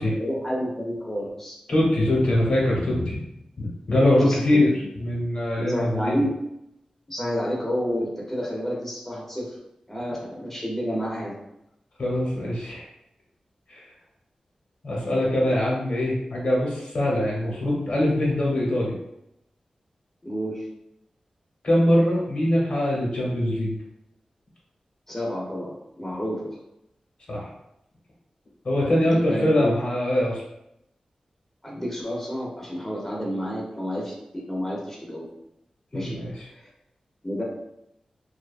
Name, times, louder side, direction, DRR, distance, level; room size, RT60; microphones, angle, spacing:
voice 1, 0.1-1.6 4.2-4.9 5.6-6.3 7.1-9.6 9.9-11.4 20.2-20.7 25.1-26.6 29.0-29.7 31.6-35.3 35.9-36.2 36.6-36.7 37.2-37.4, equal, 10° left, -4 dB, 0.7 m, -30 dB
voice 2, 1.7-3.2 3.6-4.7 5.0-6.2 12.0-12.9 13.7-13.9 14.8-18.9 21.6-23.7 27.3-27.4 28.6-30.4 35.9-36.3, left 1 dB, 65° left, -4 dB, 1.0 m, -23 dB
2.7 x 2.3 x 2.5 m, 0.83 s
cardioid pair, 65°, 2 cm